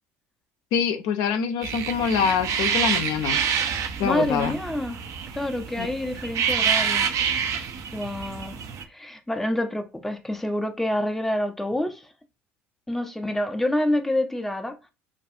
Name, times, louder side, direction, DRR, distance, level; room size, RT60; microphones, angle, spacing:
voice 1, 0.7-3.4 4.0-4.5 5.8-5.9, left 7 dB, 65° left, 0.5 m, -25 dB
sound 1, 1.6-8.8, right 7 dB, 50° right, 0.5 m, -27 dB
voice 2, 4.0-5.0 5.3-7.5 7.9-8.6 8.9-12.1 12.9-14.8, left 1 dB, 5° left, 0.5 m, -27 dB
2.5 x 2.3 x 2.6 m
hypercardioid pair, 65°, 7 cm